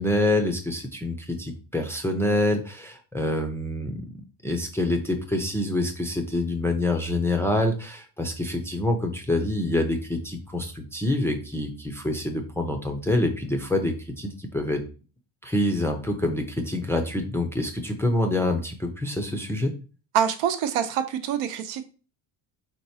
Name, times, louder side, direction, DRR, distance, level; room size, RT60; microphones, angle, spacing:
voice 1, 0.0-4.0 4.4-14.8 15.4-19.7, left 1 dB, 5° left, 0.4 m, -26 dB
voice 2, 20.1-21.8, right 9 dB, 75° right, 0.8 m, -25 dB
4.5 x 3.9 x 2.7 m
cardioid pair, 135°, 46 cm